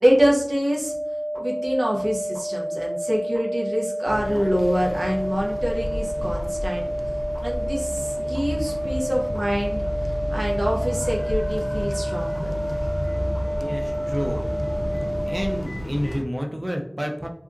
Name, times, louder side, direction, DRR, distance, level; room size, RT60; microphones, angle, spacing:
voice 1, 0.0-0.9 1.3-6.9 7.4-9.8 10.3-12.5, equal, 85° right, -2 dB, 0.6 m, -25 dB
sound 1, 0.8-15.6, right 1 dB, 65° right, 1.3 m, -29 dB
sound 2, 4.0-16.2, equal, 80° left, 0.3 m, -31 dB
voice 2, 13.6-14.4 15.2-17.3, equal, 25° right, 2 dB, 0.4 m, -29 dB
2.8 x 2.4 x 2.4 m, 0.64 s
wide cardioid pair, 45°, 0 cm